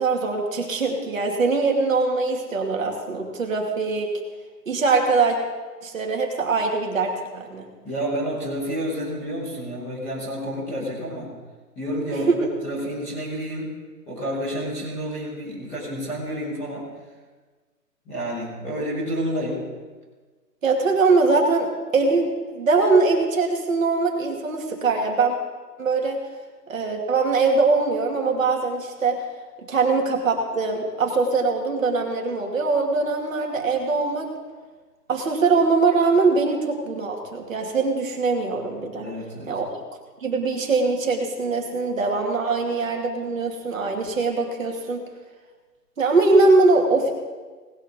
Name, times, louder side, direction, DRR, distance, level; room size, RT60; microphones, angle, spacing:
voice 1, 0.0-4.1 4.7-5.4 5.8-7.7 12.1-12.5 20.6-21.7 21.9-25.4 25.8-26.2 26.7-29.2 29.7-34.3 35.1-39.1 39.5-39.7 40.2-45.0 46.0-47.1, right 3 dB, 50° right, 1 dB, 2.5 m, -22 dB
voice 2, 7.8-11.3 11.7-13.7 14.1-16.9 18.0-19.7 39.0-39.6, equal, 5° left, -11 dB, 1.1 m, -29 dB
19.0 x 7.0 x 5.3 m, 1.3 s
hypercardioid pair, 165°, 49 cm